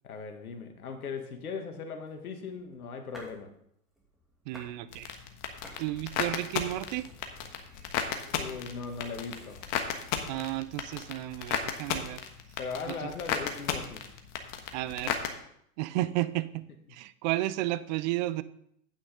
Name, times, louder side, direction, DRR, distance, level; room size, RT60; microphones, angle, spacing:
voice 1, 0.0-3.5 8.3-9.6 12.6-14.0, left 5 dB, 75° left, 6 dB, 1.7 m, -39 dB
sound 1, 2.1-3.5 3.9-4.8 5.1-9.8, equal, ahead, 2.4 m, -54 dB
voice 2, 4.5-5.1 5.8-7.1 10.3-12.2 12.9-13.1 14.7-15.1 15.8-16.7 16.9-18.4, right 16 dB, 35° right, 16 dB, 0.4 m, -32 dB
sound 2, 4.9-15.3, left 8 dB, 40° left, 1.3 m, -35 dB
9.2 x 8.8 x 3.8 m, 0.70 s
hypercardioid pair, 105°, 44 cm